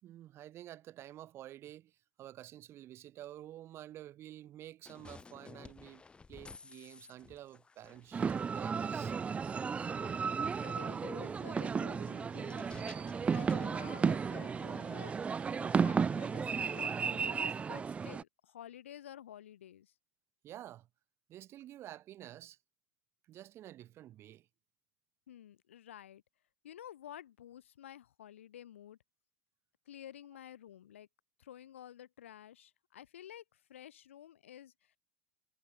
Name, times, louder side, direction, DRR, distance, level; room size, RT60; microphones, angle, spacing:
voice 1, 0.0-6.0 6.3-9.1 20.4-20.9 21.3-22.6 23.3-24.5, right 13 dB, 40° right, 5.0 m, -50 dB
sound 1, 4.9-16.9, left 4 dB, 15° left, 3.4 m, -56 dB
sound 2, 8.1-18.2, right 6 dB, 20° right, 0.7 m, -34 dB
voice 2, 10.0-12.8 13.1-15.1 15.5-19.9 25.3-26.2 26.6-29.0 29.9-31.1 31.4-35.0, left 11 dB, 85° left, 4.1 m, -52 dB
hypercardioid pair, 110°, 7 cm